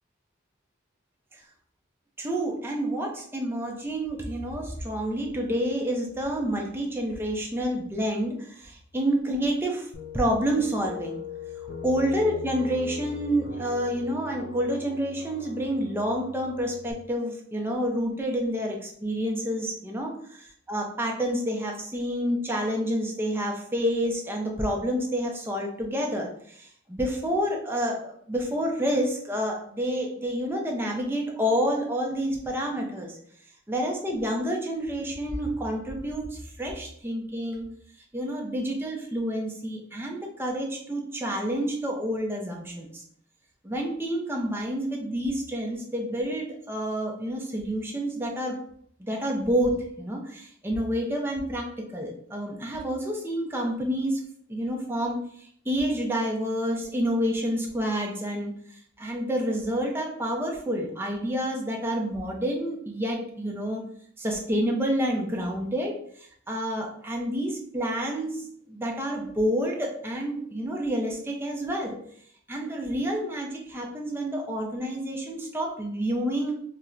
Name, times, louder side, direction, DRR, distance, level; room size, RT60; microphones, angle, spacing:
voice 1, 2.2-9.9 10.1-11.2 11.8-20.1 20.7-33.2 33.7-37.7 38.1-43.0 43.6-48.5 49.0-54.2 54.5-63.9 64.2-72.0 72.5-76.5, equal, 10° right, 0 dB, 0.5 m, -29 dB
sound 1, 9.9-16.9, left 4 dB, 55° left, 0.4 m, -40 dB
4.3 x 2.1 x 2.4 m, 0.65 s
head